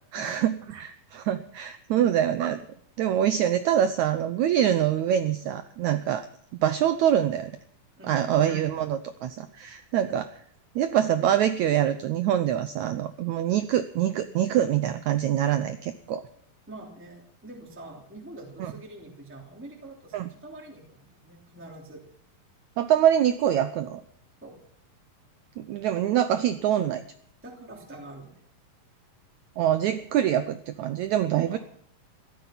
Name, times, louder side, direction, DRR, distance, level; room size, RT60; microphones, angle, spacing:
voice 1, 0.1-2.6 3.0-6.3 6.6-7.5 8.1-10.3 10.7-16.2 18.6-18.7 20.1-20.3 22.8-24.0 25.6-27.0 29.6-31.6, right 10 dB, 85° right, 12 dB, 1.6 m, -25 dB
voice 2, 8.0-8.4 16.7-22.0 24.4-24.5 27.4-28.4 31.5-31.6, right 2 dB, 5° right, 0 dB, 2.5 m, -45 dB
15.5 x 13.0 x 5.9 m, 0.67 s
omnidirectional pair, 4.2 m